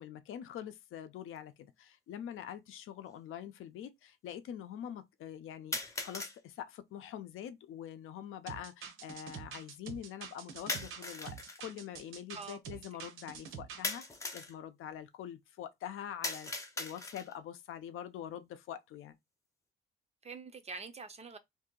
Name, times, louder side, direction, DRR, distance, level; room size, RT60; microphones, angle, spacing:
voice 1, 0.0-19.2, left 10 dB, 80° left, 0.6 m, -45 dB
sound 1, 1.4-1.5 2.4-2.5 5.7-6.4 10.7-11.6 13.8-14.5 16.2-17.4, left 2 dB, 15° left, 0.6 m, -39 dB
sound 2, 8.5-13.9, right 7 dB, 80° right, 0.7 m, -47 dB
voice 2, 12.3-12.8 20.2-21.4, right 4 dB, 30° right, 0.4 m, -46 dB
2.7 x 2.6 x 3.7 m
cardioid pair, 145°, 21 cm